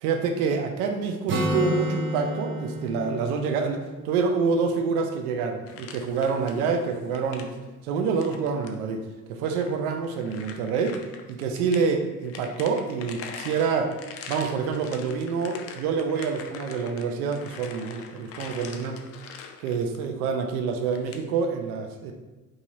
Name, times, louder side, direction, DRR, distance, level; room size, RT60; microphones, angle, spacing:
voice 1, 0.0-7.5 7.8-9.0 9.3-11.0 11.3-13.9 14.3-19.0 19.6-22.1, right 5 dB, 65° right, 4 dB, 0.7 m, -27 dB
Acoustic guitar, 1.3-5.0, right 1 dB, 25° right, 0.6 m, -30 dB
sound 1, 5.7-6.7 7.0-7.5 8.1-8.7 9.4-11.8 12.2-20.1 20.9-21.2, left 6 dB, 30° left, 0.4 m, -43 dB
4.7 x 2.7 x 2.7 m, 1.2 s
hypercardioid pair, 75°, 48 cm